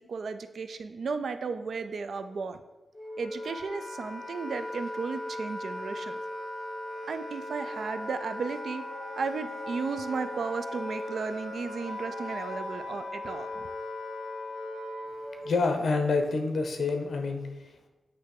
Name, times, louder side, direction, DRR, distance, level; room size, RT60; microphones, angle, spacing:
voice 1, 0.1-2.6 3.2-6.2 7.1-13.8, right 5 dB, 65° right, 9 dB, 0.5 m, -34 dB
Wind instrument woodwind instrument, 2.9-15.6, left 1 dB, 5° left, 1.4 m, -38 dB
voice 2, 15.4-17.9, left 3 dB, 65° left, 5 dB, 1.0 m, -28 dB
8.8 x 3.4 x 6.6 m, 1.1 s
wide cardioid pair, 155°, 0 cm